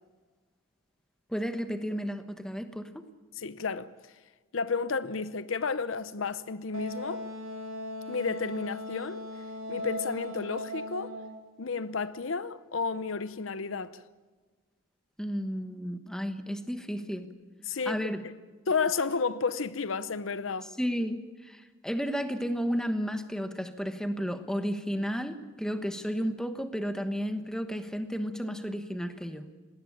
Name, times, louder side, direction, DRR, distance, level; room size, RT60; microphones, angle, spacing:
voice 1, 1.3-3.0 15.2-17.3 17.9-18.2 20.8-29.4, equal, 5° left, 1.2 m, -33 dB
voice 2, 3.4-3.9 4.5-7.2 8.1-9.2 9.7-11.1 11.6-14.0 17.7-18.1 18.7-20.7, left 5 dB, 75° left, 0.8 m, -32 dB
Wind instrument woodwind instrument, 6.7-11.4, left 1 dB, 85° right, 2.9 m, -38 dB
19.0 x 18.5 x 8.7 m
head